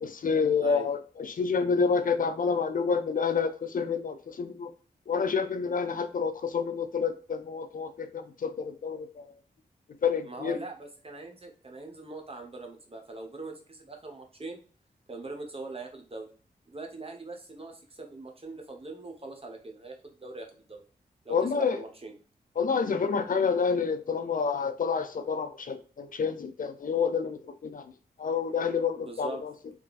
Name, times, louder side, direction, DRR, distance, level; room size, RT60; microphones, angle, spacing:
voice 1, 0.0-4.7 5.1-9.3 10.0-10.6 21.3-21.8 22.6-27.9 28.2-29.5, left 5 dB, 55° left, 9 dB, 0.5 m, -28 dB
voice 2, 10.2-14.6 15.1-16.3 16.7-20.8 21.2-22.1 29.0-29.4, right 3 dB, 35° right, 3 dB, 1.1 m, -42 dB
3.6 x 3.2 x 2.4 m, 0.39 s
cardioid pair, 65°, 16 cm